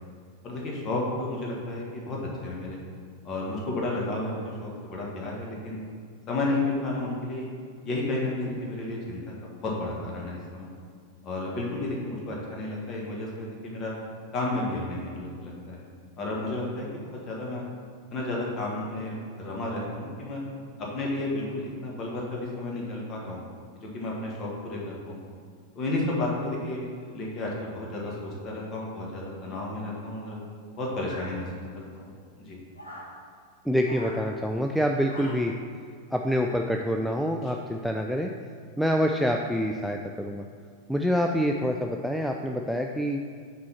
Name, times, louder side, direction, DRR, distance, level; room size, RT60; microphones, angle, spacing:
voice 1, 0.4-2.8 3.2-5.8 6.3-7.5 7.8-9.3 9.6-10.7 11.2-13.9 14.3-15.8 16.2-17.6 18.1-20.4 20.8-23.4 23.8-25.2 25.7-30.4 30.8-32.1 32.3-32.6 35.2-35.3 37.4-37.5, left 2 dB, 30° left, -3 dB, 1.7 m, -32 dB
sound 1, 31.1-31.8 32.7-33.2 33.8-34.2 35.0-35.6, left 1 dB, 80° left, 1.3 m, -43 dB
voice 2, 33.7-35.5 36.1-38.3 38.8-40.4 40.9-43.2, equal, ahead, 2 dB, 0.3 m, -26 dB
6.0 x 4.4 x 5.7 m, 2.2 s
figure-of-eight pair, 90°, 0 cm